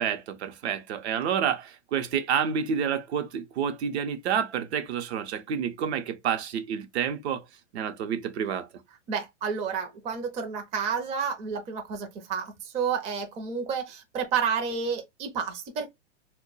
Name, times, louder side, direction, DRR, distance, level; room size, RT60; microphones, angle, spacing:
voice 1, 0.0-7.4 7.7-8.7, right 7 dB, 60° right, 0.7 m, -29 dB
voice 2, 9.1-15.9, right 6 dB, 20° right, 0.5 m, -30 dB
2.2 x 2.2 x 3.8 m
hypercardioid pair, 125°, 36 cm